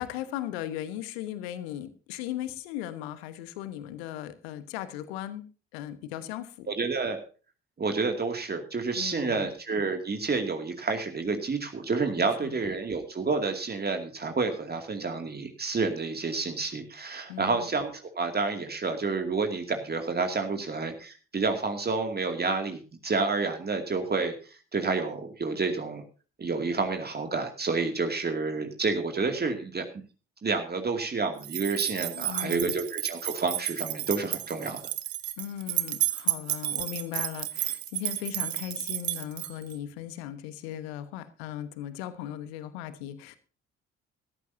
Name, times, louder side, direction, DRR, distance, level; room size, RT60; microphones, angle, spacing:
voice 1, 0.0-5.5 5.7-6.7 8.9-9.5 12.2-12.5 17.3-17.7 32.1-32.8 35.4-43.4, left 12 dB, 70° left, 13 dB, 1.3 m, -37 dB
voice 2, 6.7-7.2 7.8-24.3 24.7-26.0 26.4-30.0 30.4-34.9, right 4 dB, 30° right, 5 dB, 2.4 m, -29 dB
sound 1, 31.4-39.7, right 14 dB, 80° right, 1.0 m, -32 dB
17.0 x 14.5 x 2.8 m, 0.36 s
figure-of-eight pair, 45°, 32 cm